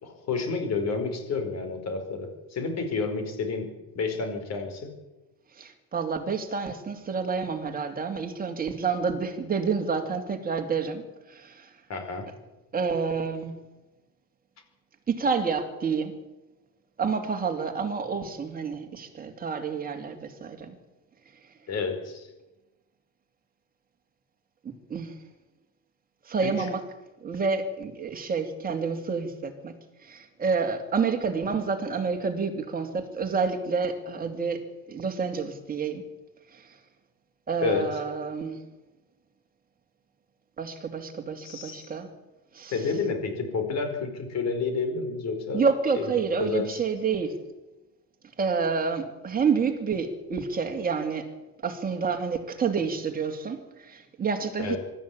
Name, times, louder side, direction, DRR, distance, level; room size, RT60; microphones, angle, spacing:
voice 1, 0.0-3.7 3.9-4.9 11.9-12.3 21.7-22.3 26.4-26.7 37.6-37.8 41.4-41.9 42.7-45.6 45.9-46.0 46.4-46.8 54.6-54.8, left 4 dB, 40° left, 4.9 m, -30 dB
voice 2, 5.6-11.0 11.3-11.7 12.7-13.6 15.1-16.2 17.0-20.7 24.9-25.1 26.3-26.8 27.2-29.7 30.0-36.0 36.6-36.7 37.5-38.6 40.6-42.1 42.5-42.7 45.5-47.4 48.4-54.8, right 5 dB, 20° right, 2.7 m, -29 dB
24.0 x 13.0 x 8.7 m
cardioid pair, 155°, 40 cm